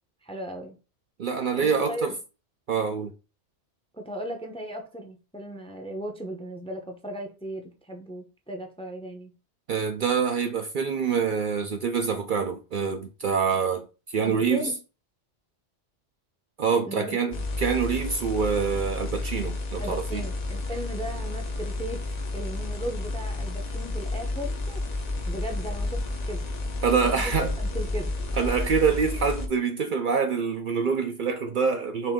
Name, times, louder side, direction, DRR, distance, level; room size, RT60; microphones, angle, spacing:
voice 1, 0.2-0.8 1.6-2.1 4.0-9.3 14.2-14.8 16.8-17.2 19.8-22.0 22.3-24.8 25.3-26.4 27.0-28.1, right 1 dB, 5° left, 0.6 m, -36 dB
voice 2, 1.2-2.1 2.7-3.1 9.7-13.9 14.1-14.7 16.6-20.2 26.8-27.5 28.4-32.1, right 6 dB, 60° right, 0.6 m, -26 dB
sound 1, 17.3-29.5, left 2 dB, 45° left, 0.8 m, -31 dB
5.5 x 2.6 x 3.5 m
omnidirectional pair, 1.1 m